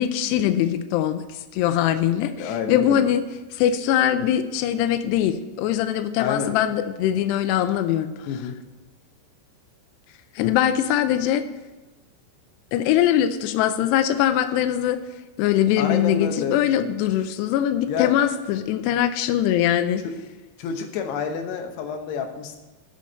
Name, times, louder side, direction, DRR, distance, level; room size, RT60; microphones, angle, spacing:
voice 1, 0.0-3.2 3.5-8.1 10.4-11.4 12.7-15.0 15.4-20.1, left 11 dB, 90° left, 10 dB, 2.4 m, -22 dB
voice 2, 2.4-3.1 6.2-6.6 8.3-8.6 15.8-16.6 17.9-18.1 20.6-22.6, left 6 dB, 70° left, 4 dB, 2.9 m, -28 dB
8.4 x 7.1 x 7.8 m, 1.2 s
omnidirectional pair, 5.5 m